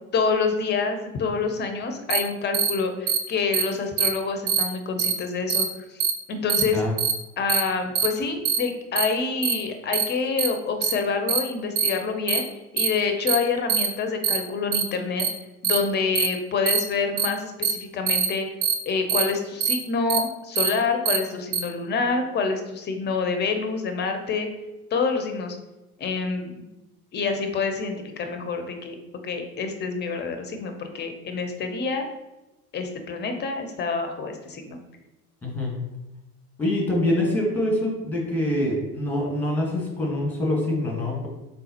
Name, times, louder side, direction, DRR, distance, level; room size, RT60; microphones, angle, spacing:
voice 1, 0.1-6.0 6.3-6.8 7.4-12.5 12.7-15.3 15.6-18.5 18.9-24.5 24.9-25.6 26.0-26.7 27.1-29.0 29.2-32.0 32.7-34.8, left 4 dB, 25° left, 6 dB, 0.6 m, -27 dB
sound 1, 2.1-2.2 2.5-2.7 3.1-3.2 3.5-3.6 4.0-4.1 4.5-4.6 5.0-5.1 5.5-5.6 6.0-6.1 6.5-6.6 7.0-7.1 7.5-7.6 8.0-8.1 8.5-8.6 9.0-9.1 9.4-9.5 9.9-10.0 10.4-10.5 10.8-10.9 11.3-11.4 11.8-11.9 12.3-12.4 12.8-12.9 13.3-13.4 13.7-13.9 14.2-14.4 14.7-14.8 15.2-15.3 15.6-15.8 16.2-16.3 16.7-16.8 17.2-17.3 17.6-17.7 18.1-18.3 18.6-18.7 19.1-19.2 19.6-19.7 20.1-20.2 20.6-20.7 21.1-21.2 21.5-21.6, right 8 dB, 50° right, 0.8 m, -22 dB
voice 2, 35.4-35.8 36.6-41.3, left 1 dB, 5° left, -2 dB, 1.3 m, -25 dB
3.8 x 3.6 x 2.8 m, 1.0 s
figure-of-eight pair, 70°, 45 cm